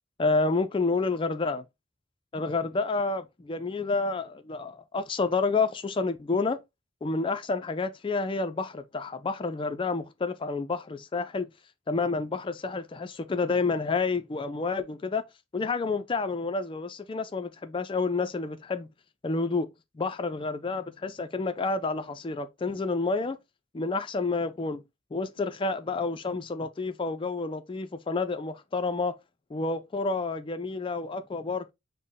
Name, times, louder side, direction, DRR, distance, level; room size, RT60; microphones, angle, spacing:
voice 1, 0.2-1.6 2.3-6.6 7.0-11.5 11.9-15.2 15.5-18.9 19.2-19.7 19.9-23.4 23.7-24.8 25.1-29.1 29.5-31.7, left 3 dB, 25° left, 0.3 m, -29 dB
5.5 x 2.1 x 3.5 m
head